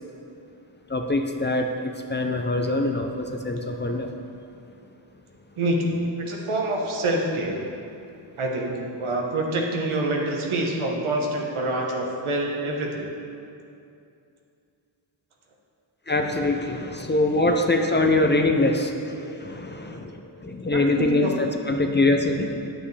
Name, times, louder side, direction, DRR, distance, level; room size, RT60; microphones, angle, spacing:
voice 1, 0.9-4.1 16.1-22.7, left 2 dB, 20° left, 4 dB, 0.6 m, -24 dB
voice 2, 5.6-7.6 8.4-13.0 20.7-21.3, right 1 dB, 80° right, 0 dB, 1.3 m, -26 dB
9.3 x 7.6 x 3.4 m, 2.6 s
cardioid pair, 80°, 48 cm